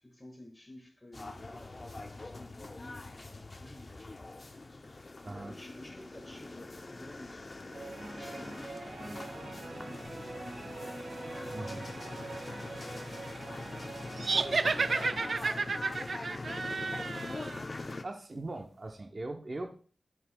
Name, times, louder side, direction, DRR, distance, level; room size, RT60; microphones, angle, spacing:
voice 1, 0.0-4.3 5.2-7.5 8.1-10.7 11.1-12.2 13.9-16.4, left 1 dB, 10° left, 1.7 m, -52 dB
sound 1, 1.1-18.0, left 2 dB, 40° left, 0.5 m, -43 dB
voice 2, 5.2-5.5 11.5-11.9 18.0-19.7, right 2 dB, 40° right, 0.7 m, -40 dB
sound 2, 7.7-16.3, right 2 dB, 80° right, 1.8 m, -44 dB
sound 3, 14.2-17.6, right 4 dB, 60° right, 0.3 m, -31 dB
10.5 x 5.8 x 2.2 m
wide cardioid pair, 95°, 0 cm